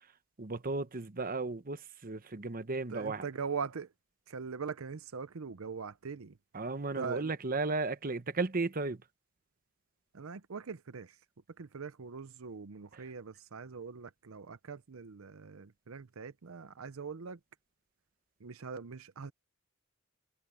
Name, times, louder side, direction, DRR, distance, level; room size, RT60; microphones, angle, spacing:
voice 1, 0.4-3.2 6.5-9.0 12.9-13.0, right 3 dB, 40° right, 1.0 m, -35 dB
voice 2, 2.9-3.9 4.3-6.4 7.0-7.3 10.1-11.2 11.6-17.4 18.4-19.3, right 5 dB, 75° right, 0.7 m, -42 dB
head